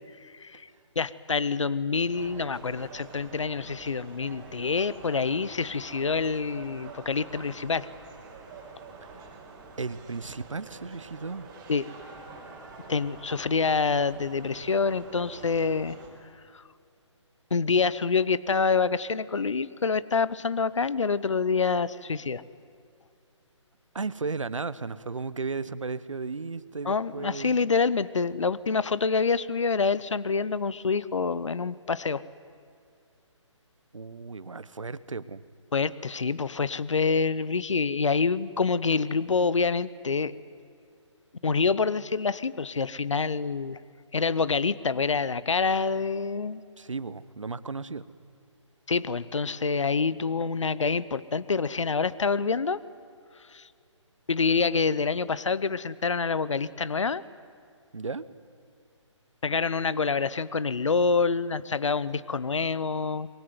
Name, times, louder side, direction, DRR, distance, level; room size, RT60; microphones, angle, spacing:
voice 1, 0.2-0.7 1.0-7.9 11.7-11.8 12.9-16.0 16.5-16.6 17.5-22.4 26.8-32.2 35.7-40.3 41.4-43.8 44.1-46.6 48.9-52.8 53.5-53.6 54.3-57.2 59.4-63.3, left 4 dB, 75° left, 18 dB, 0.8 m, -26 dB
sound 1, 2.1-16.1, right 4 dB, 20° right, 5.3 m, -47 dB
voice 2, 9.0-9.4 9.8-11.5 23.9-27.5 33.9-35.4 46.8-48.1 57.9-58.2, right 4 dB, 80° right, 16 dB, 1.1 m, -35 dB
24.5 x 22.0 x 9.5 m, 2.4 s
figure-of-eight pair, 145°, 16 cm